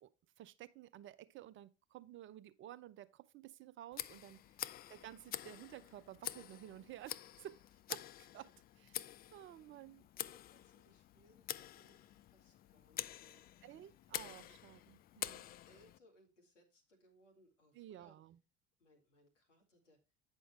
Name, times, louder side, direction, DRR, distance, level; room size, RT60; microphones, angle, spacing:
voice 1, 0.4-4.4 4.9-7.6 7.9-10.0 13.6-15.5 17.7-18.4, right 13 dB, 35° right, 0.5 m, -53 dB
Tick, 3.9-16.0, left 12 dB, 25° left, 0.4 m, -48 dB
voice 2, 10.1-13.5 14.2-14.5 15.7-18.2 18.8-20.0, equal, 80° left, 2.2 m, -69 dB
8.9 x 6.4 x 3.1 m
figure-of-eight pair, 60°, 36 cm